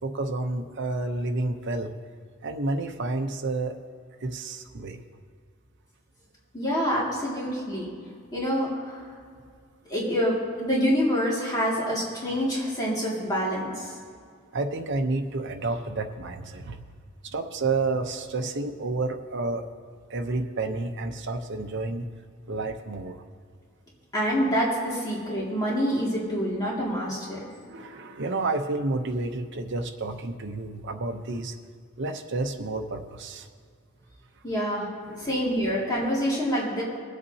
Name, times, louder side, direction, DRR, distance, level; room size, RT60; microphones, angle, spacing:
voice 1, 0.0-1.9 2.4-3.7 4.2-5.0 14.5-16.8 17.2-19.7 20.1-22.1 22.5-23.2 27.7-31.5 32.0-33.5 35.1-35.4, right 2 dB, 60° right, 4 dB, 0.8 m, -30 dB
voice 2, 6.5-7.9 8.3-9.0 9.9-13.9 24.1-27.4 34.4-34.9 35.2-36.8, equal, 20° left, -6 dB, 2.2 m, -26 dB
22.5 x 8.4 x 2.8 m, 2.1 s
head